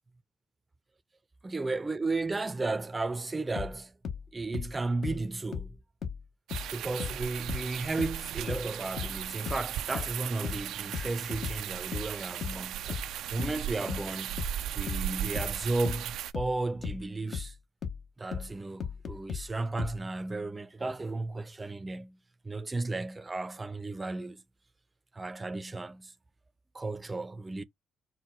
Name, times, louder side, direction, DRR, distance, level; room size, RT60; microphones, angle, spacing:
voice 1, 1.4-4.0 4.3-5.8 6.7-14.4 14.7-17.5 18.2-22.2 22.4-24.4 25.1-26.1 26.7-27.6, right 3 dB, 20° right, 0.5 m, -34 dB
sound 1, 3.6-6.7 7.0-20.0, left 7 dB, 60° left, 0.8 m, -37 dB
sound 2, 6.5-16.3, right 12 dB, 85° right, 0.3 m, -37 dB
4.5 x 2.2 x 4.6 m
cardioid pair, 90°, 0 cm